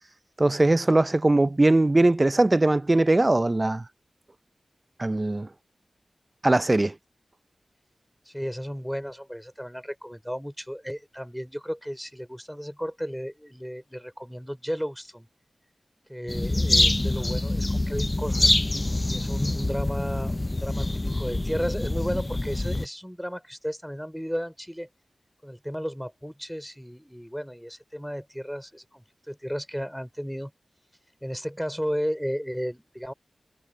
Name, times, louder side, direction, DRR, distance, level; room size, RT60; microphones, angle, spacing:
voice 1, 0.4-3.8 5.0-5.5 6.4-6.9, right 2 dB, 25° right, 0.5 m, -20 dB
voice 2, 8.3-15.3 16.1-18.5 19.1-20.9 21.2-24.9 25.4-30.5 31.2-33.1, equal, ahead, 5.3 m, -34 dB
sound 1, 16.3-22.9, left 2 dB, 25° left, 0.4 m, -25 dB
wide cardioid pair, 75°, 0 cm